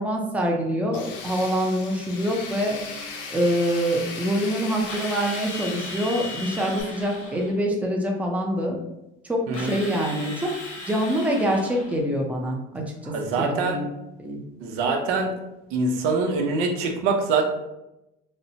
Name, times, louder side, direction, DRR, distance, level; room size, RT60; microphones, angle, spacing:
voice 1, 0.0-2.8 3.3-8.8 9.2-10.5 10.9-13.9 14.2-14.4, equal, 5° right, 0 dB, 0.5 m, -25 dB
Tools, 0.9-6.8, left 4 dB, 55° left, 0.7 m, -37 dB
Drill, 4.9-7.6 9.5-12.0, left 2 dB, 80° left, 1.2 m, -37 dB
voice 2, 13.1-13.8 14.6-15.3 15.7-17.4, right 4 dB, 90° right, 2 dB, 0.7 m, -24 dB
4.1 x 2.1 x 2.7 m, 0.90 s
cardioid pair, 135°, 21 cm